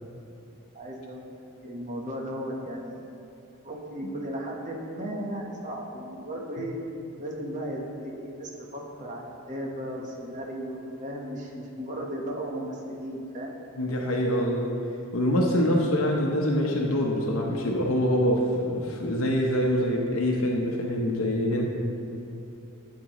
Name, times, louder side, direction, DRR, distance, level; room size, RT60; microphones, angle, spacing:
voice 1, 0.7-1.3 1.6-3.1 3.6-6.8 7.2-13.6, equal, 35° right, -1 dB, 1.1 m, -35 dB
voice 2, 13.8-14.7 15.1-21.6, equal, 75° left, -1 dB, 0.9 m, -25 dB
13.0 x 7.4 x 3.0 m, 2.7 s
head